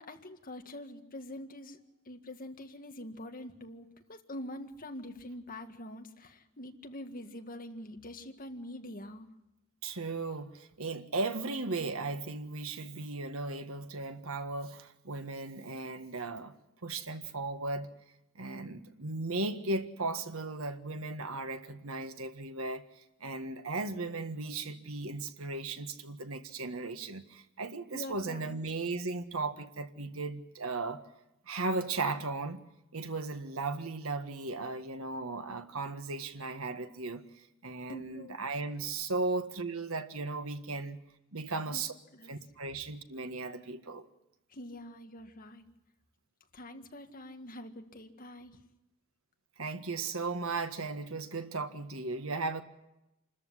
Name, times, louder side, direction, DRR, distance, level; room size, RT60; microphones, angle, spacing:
voice 1, 0.0-1.8 2.1-9.3 27.9-28.6 37.9-38.4 41.7-41.8 42.1-42.3 44.5-45.7 46.5-48.6, left 1 dB, 45° left, 1.9 m, -45 dB
voice 2, 9.8-16.5 16.8-17.9 18.3-22.8 23.2-31.0 31.5-32.6 32.9-37.2 37.6-41.0 41.3-41.9 42.3-44.1 49.6-52.6, right 3 dB, 90° right, 1.6 m, -36 dB
27.5 x 14.0 x 9.8 m
head